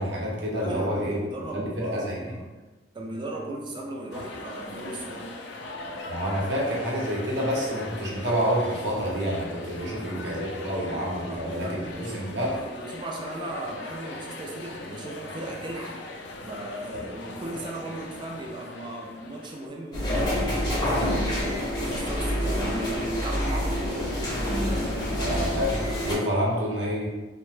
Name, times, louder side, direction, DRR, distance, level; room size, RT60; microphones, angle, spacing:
voice 1, 0.0-1.2 1.5-2.3 6.1-11.8 12.1-12.5 25.2-27.1, equal, 70° right, -3 dB, 0.8 m, -28 dB
voice 2, 0.5-2.6 2.9-5.3 9.8-10.2 11.2-16.0 16.4-24.4, right 1 dB, 25° right, 0 dB, 0.4 m, -37 dB
sound 1, 4.1-19.7, left 2 dB, 60° left, 0.3 m, -40 dB
sound 2, 19.9-26.1, equal, 25° left, 0.6 m, -27 dB
2.7 x 2.1 x 3.1 m, 1.2 s
head